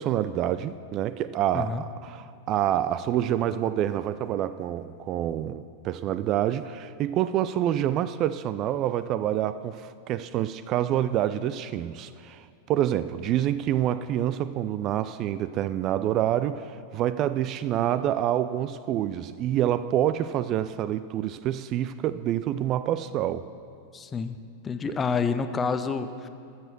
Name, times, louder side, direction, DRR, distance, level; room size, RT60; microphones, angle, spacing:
voice 1, 0.0-23.4, right 11 dB, 35° right, 14 dB, 0.3 m, -27 dB
voice 2, 23.9-24.4 24.6-26.3, left 5 dB, 20° left, 10 dB, 0.6 m, -28 dB
13.5 x 6.9 x 6.0 m, 2.5 s
figure-of-eight pair, 90°, 0 cm